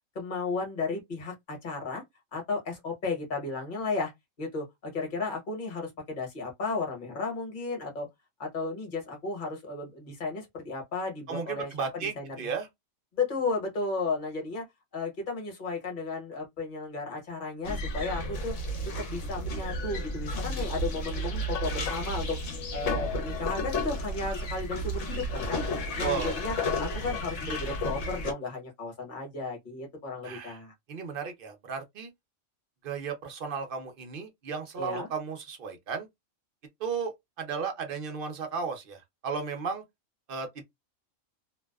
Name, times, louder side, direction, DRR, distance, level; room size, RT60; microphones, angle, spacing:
voice 1, 0.1-2.0 2.3-4.1 4.4-8.1 8.4-12.5 13.1-14.6 14.9-18.5 19.1-22.4 22.7-25.6 26.0-30.7 34.8-35.1, left 3 dB, 40° left, 1.1 m, -34 dB
voice 2, 11.3-12.1 12.4-12.7 26.0-26.4 30.2-30.6 30.9-32.1 32.8-36.1 36.8-39.8 40.3-40.6, right 6 dB, 55° right, 0.7 m, -34 dB
sound 1, 17.7-28.3, left 1 dB, 65° left, 1.0 m, -32 dB
2.5 x 2.2 x 2.2 m
omnidirectional pair, 1.5 m